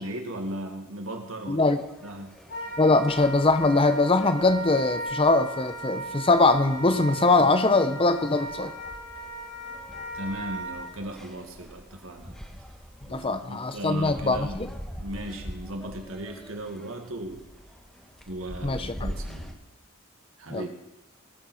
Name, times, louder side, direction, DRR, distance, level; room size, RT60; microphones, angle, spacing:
voice 1, 0.0-1.7 2.0-2.4 10.1-12.4 13.1-14.6 15.0-17.5 18.3-19.6 20.4-20.7, right 1 dB, 70° right, 4 dB, 2.1 m, -37 dB
voice 2, 1.5-1.8 2.8-8.7 13.1-14.7 18.6-19.1 20.5-20.7, left 3 dB, 25° left, 10 dB, 0.8 m, -22 dB
sound 1, 1.7-19.5, equal, 5° left, 1.3 m, -44 dB
Wind instrument woodwind instrument, 2.5-10.8, right 2 dB, 70° left, 4.0 m, -37 dB
19.5 x 7.2 x 6.4 m, 1.0 s
head